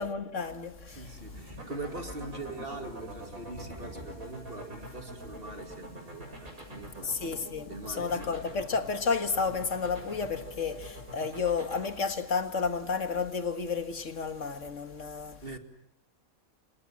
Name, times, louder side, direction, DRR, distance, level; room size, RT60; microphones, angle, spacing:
voice 1, 0.0-1.1 7.0-15.4, left 5 dB, 60° left, 2.1 m, -31 dB
sound 1, 0.9-14.7, equal, 15° right, 8.1 m, -55 dB
voice 2, 0.9-7.1 7.7-8.4 15.4-15.6, right 3 dB, 40° right, 2.7 m, -42 dB
sound 2, 1.5-11.9, right 1 dB, 70° right, 7.7 m, -44 dB
30.0 x 26.5 x 7.5 m
omnidirectional pair, 1.5 m